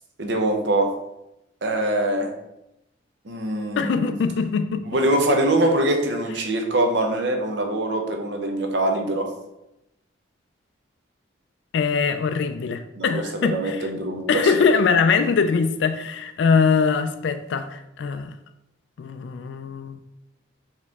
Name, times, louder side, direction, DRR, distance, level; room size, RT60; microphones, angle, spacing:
voice 1, 0.2-0.9 1.6-2.3 3.2-4.1 4.9-9.3 13.0-14.6, right 1 dB, 65° right, 3 dB, 0.7 m, -23 dB
voice 2, 3.8-4.8 11.7-13.8 14.3-18.3 19.0-20.1, left 5 dB, 70° left, 9 dB, 0.3 m, -22 dB
4.6 x 3.0 x 3.5 m, 0.88 s
head